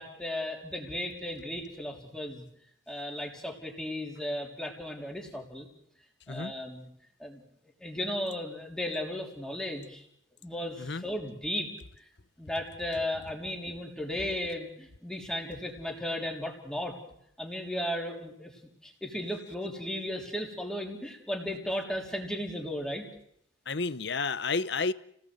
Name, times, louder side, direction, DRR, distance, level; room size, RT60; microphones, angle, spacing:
voice 1, 0.0-2.4 2.9-5.7 6.3-6.9 7.2-7.4 7.8-10.0 10.4-12.1 12.4-17.0 17.4-18.5 18.8-23.0, left 1 dB, 5° left, 1 dB, 3.6 m, -35 dB
voice 2, 23.7-24.9, left 4 dB, 60° left, 15 dB, 0.9 m, -31 dB
30.0 x 18.0 x 7.9 m, 0.74 s
head